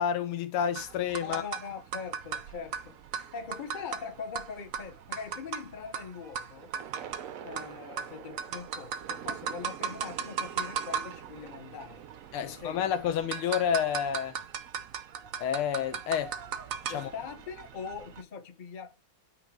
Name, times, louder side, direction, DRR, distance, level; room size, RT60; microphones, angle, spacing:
voice 1, 0.0-1.4 12.3-14.4 15.4-16.4 16.9-17.1, left 8 dB, 80° left, 1.7 m, -29 dB
sound 1, 0.8-18.2, right 7 dB, 75° right, 0.7 m, -38 dB
voice 2, 1.2-6.7 7.4-12.0 12.4-12.8 16.9-19.1, left 6 dB, 55° left, 0.5 m, -42 dB
9.3 x 3.2 x 4.7 m
omnidirectional pair, 2.4 m